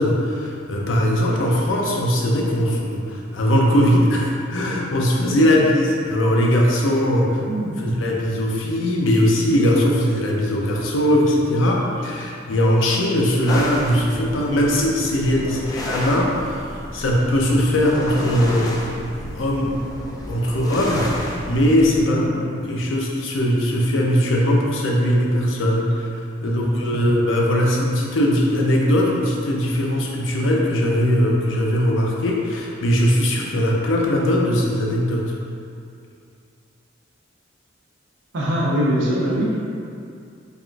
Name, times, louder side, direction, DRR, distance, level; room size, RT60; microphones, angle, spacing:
voice 1, 0.0-7.4 7.8-19.8 20.3-22.3 22.7-26.1 26.4-35.3, equal, 90° left, -2 dB, 0.5 m, -20 dB
voice 2, 7.4-7.9 15.4-15.5 22.1-22.5 26.6-27.0 38.3-39.6, equal, 75° right, -4 dB, 0.6 m, -23 dB
sound 1, 13.5-22.0, left 1 dB, 20° left, 0.3 m, -31 dB
3.4 x 2.4 x 2.3 m, 2.4 s
head